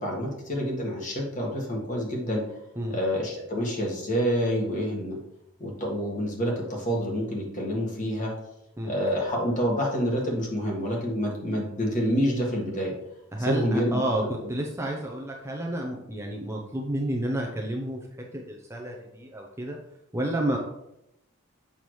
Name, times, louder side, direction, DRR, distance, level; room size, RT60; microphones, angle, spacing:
voice 1, 0.0-2.4 2.9-5.2 5.6-8.3 8.8-12.9 13.4-14.5, equal, 35° left, -1 dB, 1.5 m, -28 dB
voice 2, 13.3-18.0 18.5-19.8 20.1-20.6, right 1 dB, 10° right, -1 dB, 0.6 m, -30 dB
7.0 x 5.8 x 3.1 m, 0.85 s
head